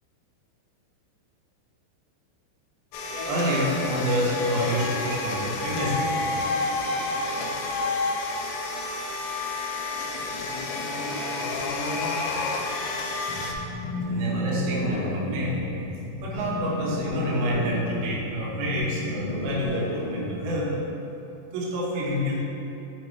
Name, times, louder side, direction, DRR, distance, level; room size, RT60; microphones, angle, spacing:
sound 1, 2.9-13.5, left 3 dB, 90° left, 3.2 m, -29 dB
voice 1, 3.3-6.1 14.1-15.6 16.2-20.7 21.5-22.4, equal, 75° right, -4 dB, 2.3 m, -28 dB
sound 2, 13.3-20.4, equal, 70° left, 2.3 m, -32 dB
7.2 x 5.1 x 3.2 m, 2.9 s
omnidirectional pair, 5.5 m